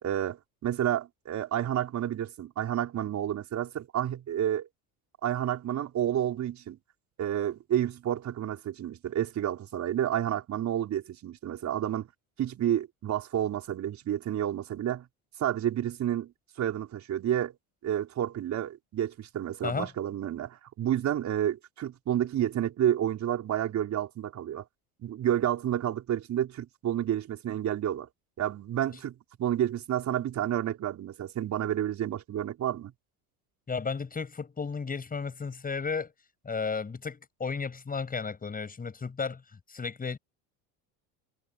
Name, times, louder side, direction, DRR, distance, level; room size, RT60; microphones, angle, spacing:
voice 1, 0.0-4.7 5.2-6.8 7.2-12.1 12.4-15.1 15.4-16.3 16.6-17.5 17.8-24.6 25.0-28.1 28.4-32.9, right 11 dB, 45° right, 5.0 m, -30 dB
voice 2, 33.7-36.1 36.4-39.4 39.7-40.2, left 5 dB, 25° left, 7.3 m, -33 dB
supercardioid pair, 110°, 38 cm